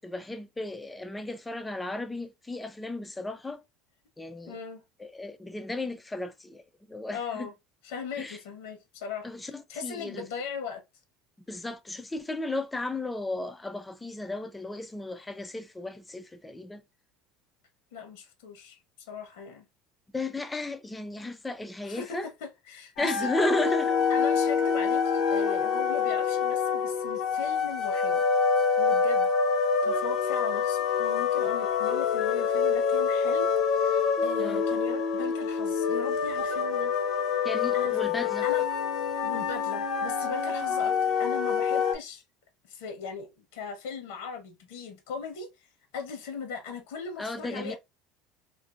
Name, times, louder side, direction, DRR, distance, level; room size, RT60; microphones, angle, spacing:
voice 1, 0.0-3.6 4.2-4.6 5.0-7.5 8.2-8.4 9.2-10.3 11.5-16.8 20.1-22.3 23.0-24.1 34.4-34.6 37.4-38.5 47.2-47.7, left 2 dB, 10° left, 0.3 m, -34 dB
voice 2, 4.5-4.8 7.1-7.5 7.8-9.3 9.7-10.8 17.9-18.8 19.1-19.6 21.8-23.3 24.1-28.2 28.8-29.3 29.8-33.5 33.8-36.9 37.7-38.0 38.4-38.7 39.2-42.2 42.7-45.5 45.9-47.8, left 5 dB, 85° left, 0.9 m, -38 dB
sound 1, 23.0-42.0, left 6 dB, 50° left, 0.6 m, -26 dB
2.5 x 2.5 x 2.4 m
cardioid pair, 150°, 0 cm